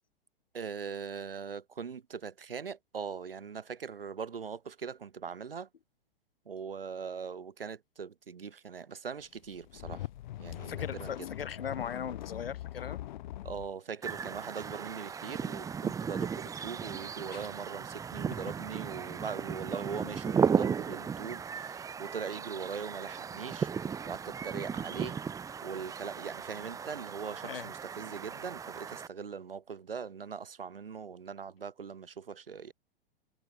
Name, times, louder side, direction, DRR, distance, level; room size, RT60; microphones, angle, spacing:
voice 1, 0.5-5.7 6.5-10.1 10.4-11.3 13.4-23.7 24.0-25.2 25.6-32.7, right 6 dB, 70° right, 2.2 m, -41 dB
sound 1, 9.5-13.7, left 13 dB, 50° left, 1.6 m, -41 dB
voice 2, 10.6-13.0 17.3-17.5 27.4-27.7, left 7 dB, 75° left, 0.7 m, -39 dB
sound 2, 14.0-29.1, right 6 dB, 10° right, 0.8 m, -35 dB
figure-of-eight pair, 100°, 29 cm